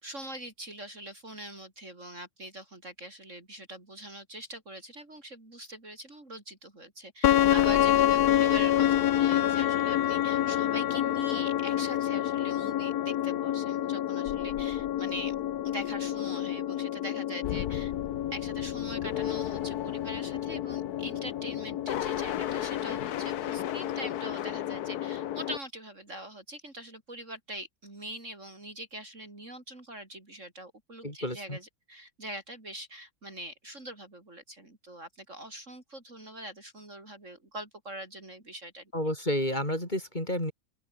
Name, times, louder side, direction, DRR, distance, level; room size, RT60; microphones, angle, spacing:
voice 1, 0.0-15.3 15.6-17.9 18.3-38.9, right 1 dB, 35° right, 4.8 m, -43 dB
sound 1, 7.2-25.6, left 12 dB, 60° left, 1.2 m, -28 dB
voice 2, 31.0-31.6 38.9-40.5, left 1 dB, 20° left, 6.7 m, -30 dB
open air
omnidirectional pair, 2.1 m